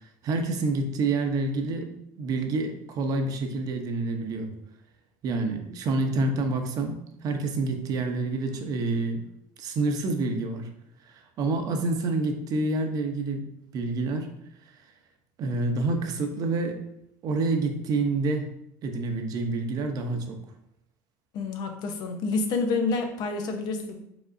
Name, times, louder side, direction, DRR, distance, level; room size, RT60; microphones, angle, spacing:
voice 1, 0.0-1.9 2.2-4.5 5.2-9.2 9.6-10.7 11.0-14.3 15.4-16.8 17.2-18.4 18.8-20.4, right 3 dB, 50° right, 5 dB, 0.7 m, -28 dB
voice 2, 21.3-24.0, left 3 dB, 60° left, 5 dB, 0.8 m, -28 dB
4.9 x 3.6 x 2.6 m, 0.78 s
supercardioid pair, 110°, 8 cm